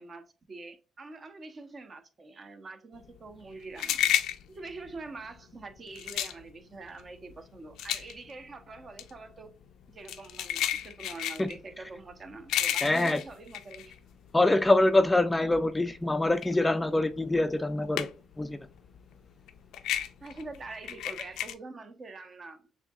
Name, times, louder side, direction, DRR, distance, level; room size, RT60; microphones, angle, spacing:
voice 1, 0.0-4.2 4.5-9.5 9.9-14.0 19.9-22.7, right 3 dB, 40° right, 0.8 m, -45 dB
sound 1, 3.0-14.6 15.0-18.4 18.7-21.5, left 11 dB, 85° left, 0.4 m, -33 dB
voice 2, 12.8-13.2 14.3-18.1 18.4-18.6, left 2 dB, 15° left, 0.3 m, -24 dB
6.7 x 2.7 x 2.3 m
cardioid pair, 90°, 0 cm